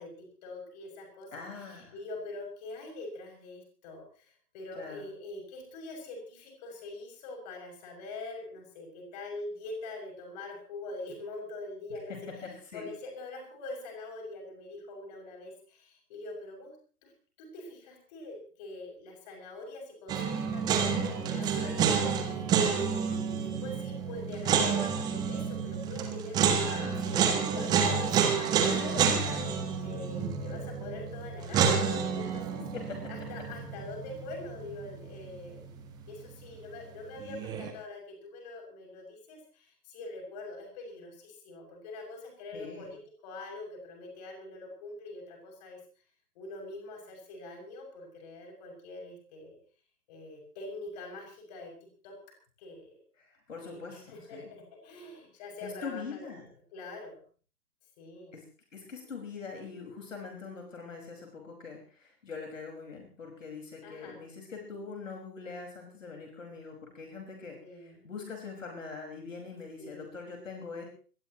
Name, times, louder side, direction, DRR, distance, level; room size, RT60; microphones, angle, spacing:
voice 1, 0.0-16.7 17.0-17.1 17.4-32.6 33.1-35.7 36.1-45.8 46.3-49.6 50.1-51.7 52.0-52.1 52.6-53.0 53.6-56.3 56.7-57.2 58.0-58.3 63.8-64.2 67.6-68.0 69.8-70.1, left 2 dB, 25° left, 2 dB, 6.8 m, -44 dB
voice 2, 1.3-1.9 4.7-5.1 12.1-12.9 21.3-21.8 26.6-27.0 28.6-29.6 32.6-33.3 42.5-42.9 53.2-54.5 55.6-56.4 58.3-58.4 58.7-70.9, left 5 dB, 55° left, 1 dB, 5.2 m, -43 dB
sound 1, 20.1-35.1 35.3-35.4 37.2-37.7, right 7 dB, 10° right, 1.4 m, -29 dB
25.5 x 18.5 x 3.0 m, 0.41 s
figure-of-eight pair, 135°, 47 cm